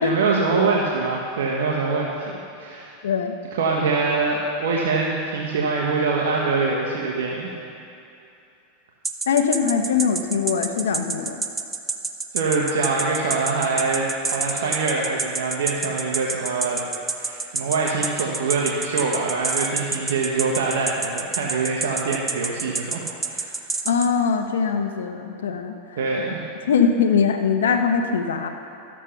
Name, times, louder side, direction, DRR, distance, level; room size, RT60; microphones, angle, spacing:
voice 1, 0.0-2.9 3.5-7.5 12.3-16.8 17.2-23.5 26.0-26.4, right 4 dB, 80° right, -2 dB, 1.2 m, -24 dB
voice 2, 3.0-3.3 9.3-11.4 23.9-25.7 26.7-28.5, left 6 dB, 85° left, 6 dB, 0.9 m, -21 dB
sound 1, 9.0-24.1, right 4 dB, 15° right, 0.7 m, -27 dB
13.0 x 7.5 x 5.8 m, 2.7 s
hypercardioid pair, 115°, 0 cm